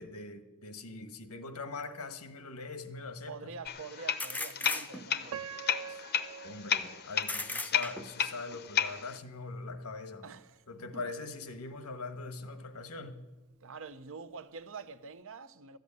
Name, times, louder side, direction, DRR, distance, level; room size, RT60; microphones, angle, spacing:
voice 1, 0.0-3.5 5.9-6.0 6.4-10.2 10.7-13.2, left 3 dB, 90° left, 1.3 m, -42 dB
sound 1, 1.8-1.9 4.2-5.3 7.2-8.3, left 2 dB, 5° left, 0.6 m, -37 dB
voice 2, 3.3-5.4 10.2-10.6 10.9-11.1 13.6-15.8, right 5 dB, 65° right, 0.8 m, -46 dB
sound 2, 3.6-9.2, left 8 dB, 45° left, 0.7 m, -34 dB
Piano, 5.3-8.3 8.9-9.0 9.6-9.9, right 8 dB, 85° right, 0.4 m, -45 dB
13.5 x 8.1 x 9.6 m
head